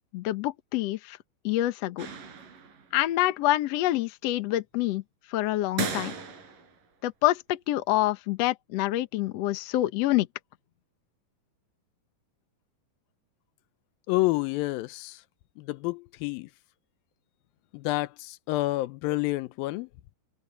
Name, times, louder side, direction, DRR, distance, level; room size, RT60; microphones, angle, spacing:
voice 1, 0.1-1.2 1.4-2.1 2.9-5.0 5.3-6.1 7.0-10.3, left 15 dB, 65° left, 1.7 m, -26 dB
sound 1, 2.0-3.0 5.8-6.8, right 5 dB, 70° right, 5.4 m, -36 dB
voice 2, 14.1-15.2 15.6-16.5 17.7-19.9, left 19 dB, 90° left, 2.5 m, -29 dB
open air
omnidirectional pair, 4.1 m